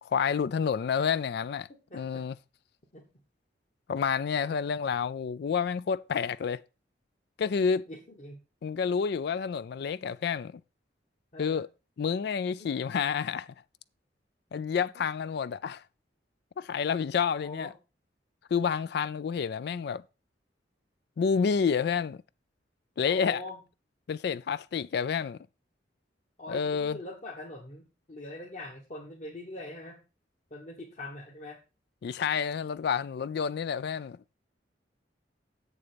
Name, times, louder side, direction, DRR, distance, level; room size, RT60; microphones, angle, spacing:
voice 1, 0.0-1.7 1.9-2.3 3.9-6.6 7.4-7.9 8.6-10.6 11.4-11.7 12.0-13.5 14.5-15.8 16.6-17.7 18.5-20.0 21.2-22.2 23.0-23.4 24.1-25.4 26.5-27.0 32.0-34.2, left 6 dB, 65° left, 0.3 m, -29 dB
voice 2, 1.7-2.2 2.9-3.0 7.9-8.4 11.3-11.6 12.6-12.7 14.9-15.1 17.4-17.7 23.0-23.6 26.4-30.0 30.5-31.6, left 1 dB, 45° left, 1.6 m, -43 dB
8.0 x 7.0 x 5.1 m
head